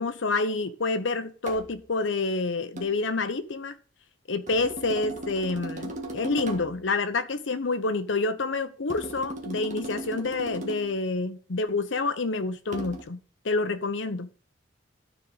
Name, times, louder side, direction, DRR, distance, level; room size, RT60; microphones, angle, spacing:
voice 1, 0.0-3.7 4.3-14.3, left 3 dB, 70° left, 0.8 m, -28 dB
sound 1, 1.5-1.7 2.8-3.0 4.5-6.8 8.9-11.0 12.7-13.0, right 1 dB, 40° right, 1.4 m, -37 dB
12.0 x 4.7 x 3.9 m
head